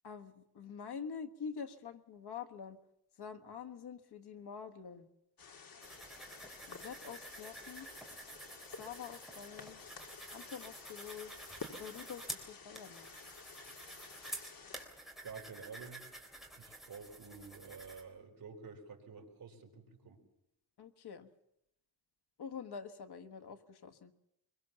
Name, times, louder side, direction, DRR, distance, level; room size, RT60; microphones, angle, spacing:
voice 1, 0.0-2.8 3.2-5.1 6.7-7.9 8.7-9.8 10.3-11.3 11.7-13.1 20.8-21.3 22.4-24.1, left 6 dB, 90° left, 8 dB, 1.5 m, -46 dB
sound 1, 5.4-14.9, left 5 dB, 60° left, 2.3 m, -52 dB
sound 2, 5.8-18.0, right 1 dB, ahead, 3.4 m, -50 dB
voice 2, 15.2-16.0 16.5-20.2, right 5 dB, 60° right, 2 dB, 4.0 m, -50 dB
24.0 x 22.5 x 7.0 m, 0.83 s
wide cardioid pair, 175°, 38 cm